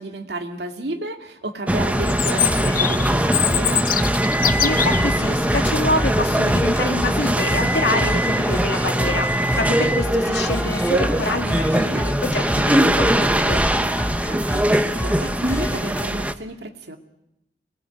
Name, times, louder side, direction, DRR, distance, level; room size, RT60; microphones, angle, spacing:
voice 1, 0.0-3.9 11.7-12.0 14.3-17.0, right 2 dB, 70° right, 6 dB, 2.3 m, -32 dB
sound 1, 1.7-16.3, right 1 dB, 10° right, 1.0 m, -21 dB
sound 2, 1.9-16.0, equal, 15° left, 2.0 m, -30 dB
Chirp tweet, 2.1-5.0, left 11 dB, 55° left, 1.0 m, -23 dB
voice 2, 4.6-13.6, left 2 dB, 80° left, 5 dB, 2.5 m, -27 dB
25.5 x 20.5 x 9.0 m, 0.88 s
head